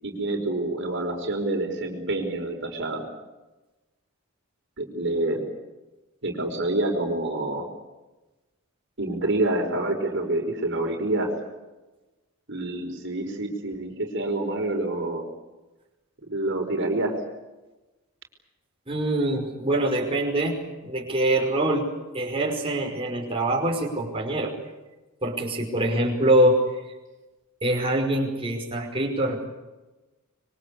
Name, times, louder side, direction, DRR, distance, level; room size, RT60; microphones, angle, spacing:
voice 1, 0.0-3.1 4.8-5.4 6.2-7.6 9.0-11.3 12.5-15.2 16.3-17.1, right 2 dB, 60° right, 3 dB, 5.1 m, -27 dB
voice 2, 18.9-20.6 20.8-21.9 22.1-24.5 25.2-26.6 27.6-29.4, right 1 dB, 25° right, 0 dB, 5.3 m, -24 dB
26.0 x 24.0 x 8.5 m, 1.1 s
head